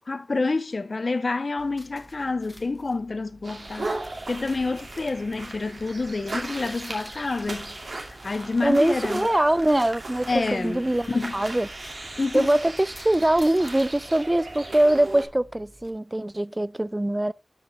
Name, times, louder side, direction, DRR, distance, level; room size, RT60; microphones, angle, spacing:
voice 1, 0.1-3.9 4.3-7.7 8.2-9.3 10.3-10.8 11.1-11.4 12.2-12.5, left 3 dB, 70° left, 0.6 m, -28 dB
sound 1, 1.6-15.9, equal, 15° left, 1.5 m, -50 dB
sound 2, 3.4-15.3, right 2 dB, 85° right, 2.6 m, -37 dB
voice 2, 8.6-11.7 12.3-17.3, right 1 dB, 25° right, 0.4 m, -23 dB
13.0 x 5.4 x 3.0 m
wide cardioid pair, 60°, 0 cm